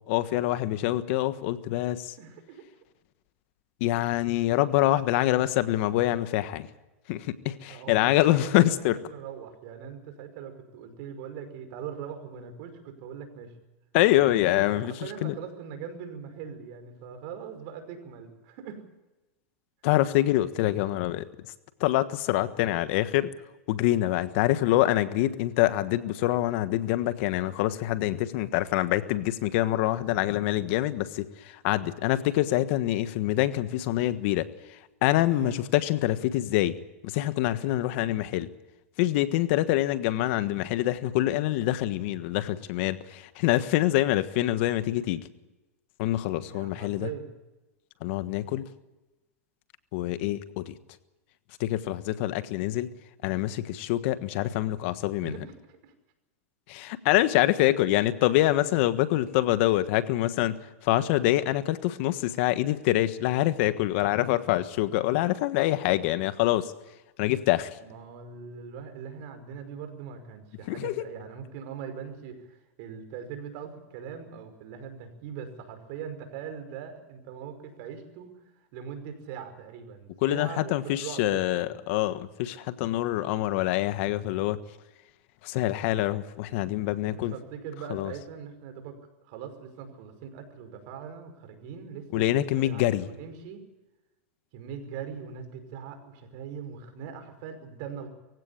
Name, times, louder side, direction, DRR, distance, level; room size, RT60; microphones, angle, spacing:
voice 1, 0.1-2.1 3.8-6.7 7.1-9.0 13.9-14.9 15.2-15.3 19.8-21.2 21.8-23.3 23.7-34.5 35.0-36.8 37.0-38.5 39.0-45.2 46.0-47.1 48.0-48.7 49.9-50.8 51.6-52.9 53.2-55.3 56.7-60.6 60.8-66.7 67.2-67.7 70.7-71.0 80.2-84.6 85.4-87.3 87.9-88.1 92.1-93.1, left 15 dB, 60° left, 12 dB, 1.4 m, -25 dB
voice 2, 2.2-2.6 7.7-13.5 14.5-18.9 35.4-35.6 46.4-47.3 55.2-55.9 67.8-78.3 78.7-81.8 87.1-89.0 89.3-93.6 94.5-98.1, right 7 dB, 55° right, 8 dB, 5.5 m, -41 dB
23.5 x 16.0 x 8.7 m, 1.0 s
hypercardioid pair, 120°, 7 cm